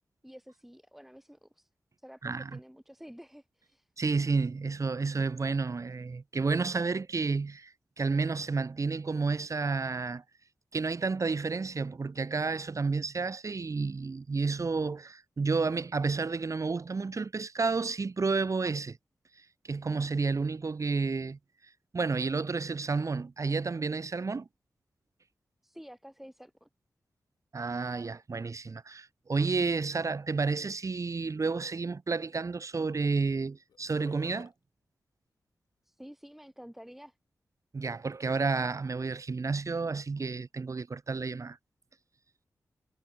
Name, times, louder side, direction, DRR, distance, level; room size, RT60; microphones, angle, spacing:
voice 1, 0.2-1.7 2.0-3.9 25.6-26.7 35.8-37.2, equal, 5° right, 6.3 m, -50 dB
voice 2, 2.2-2.6 4.0-10.2 10.7-19.0 19.7-21.4 21.9-24.5 27.5-34.5 37.7-41.6, right 4 dB, 55° right, 2.6 m, -31 dB
Burping eructation, 33.7-34.5, left 7 dB, 85° left, 2.6 m, -51 dB
cardioid pair, 45°, 6 cm